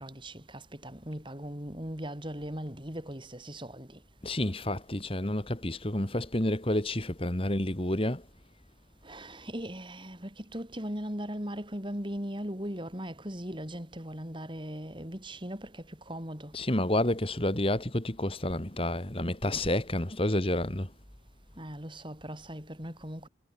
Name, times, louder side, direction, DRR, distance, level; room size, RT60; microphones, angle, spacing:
voice 1, 0.0-3.9 9.0-16.5 21.6-23.3, equal, 25° right, 5.6 m, -39 dB
voice 2, 4.2-8.2 16.5-20.9, left 1 dB, 30° left, 2.2 m, -29 dB
head